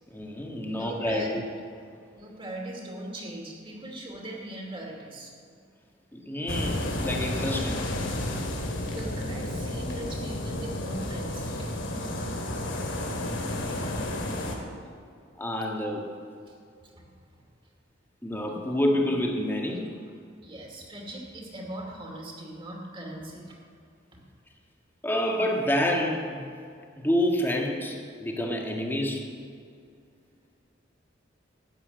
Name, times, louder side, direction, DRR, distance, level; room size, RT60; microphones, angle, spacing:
voice 1, 0.1-1.2 6.1-7.9 15.4-16.1 18.2-19.9 25.0-26.4 26.9-29.3, left 1 dB, 10° left, 0 dB, 1.7 m, -28 dB
voice 2, 0.7-1.4 2.2-5.3 8.9-11.7 16.5-16.6 16.8-17.4 19.7-19.8 20.4-23.6 24.1-24.2, right 1 dB, 30° right, -1 dB, 2.6 m, -40 dB
sound 1, 6.5-14.6, left 1 dB, 80° left, 2.3 m, -31 dB
13.0 x 8.5 x 8.9 m, 2.3 s
head